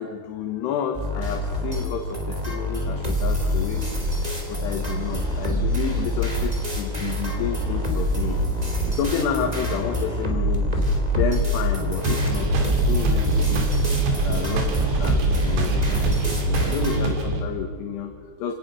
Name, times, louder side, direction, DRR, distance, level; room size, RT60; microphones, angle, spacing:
voice 1, 0.0-3.8 4.2-8.4 8.9-10.8 11.1-13.7 14.2-18.5, left 8 dB, 70° left, 5 dB, 3.3 m, -30 dB
sound 1, 0.9-17.1, equal, 10° right, 2.1 m, -25 dB
sound 2, 12.0-17.4, right 5 dB, 75° right, 5.0 m, -24 dB
27.0 x 18.0 x 6.3 m, 2.1 s
omnidirectional pair, 5.3 m